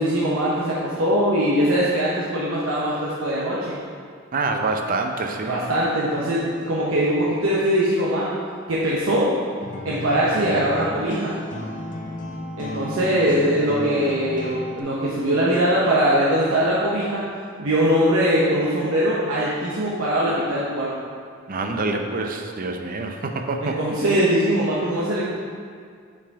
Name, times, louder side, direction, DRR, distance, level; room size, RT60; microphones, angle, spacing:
voice 1, 0.0-3.8 5.5-8.3 8.7-9.3 9.8-11.4 12.6-17.2 17.6-20.9 23.6-25.3, equal, 80° right, -7 dB, 0.9 m, -21 dB
voice 2, 4.3-5.6 21.5-23.8, right 3 dB, 45° right, 4 dB, 0.6 m, -26 dB
sound 1, 9.6-14.8, left 1 dB, 40° left, 0.7 m, -33 dB
6.0 x 4.9 x 4.8 m, 2.1 s
head